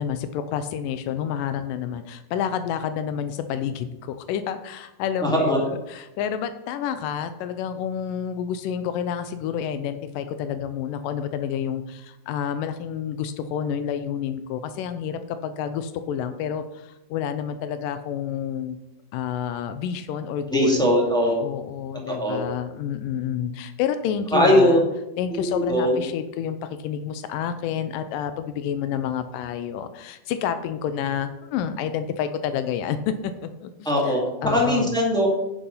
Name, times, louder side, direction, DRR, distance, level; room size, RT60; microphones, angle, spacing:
voice 1, 0.0-18.8 19.1-20.8 21.4-24.8 25.2-34.9, left 8 dB, 90° left, 10 dB, 1.9 m, -29 dB
voice 2, 5.2-5.6 20.5-21.4 22.1-22.4 24.3-24.8 25.3-26.0 33.8-35.3, equal, ahead, -4 dB, 1.4 m, -20 dB
10.5 x 7.2 x 5.4 m, 0.94 s
omnidirectional pair, 4.7 m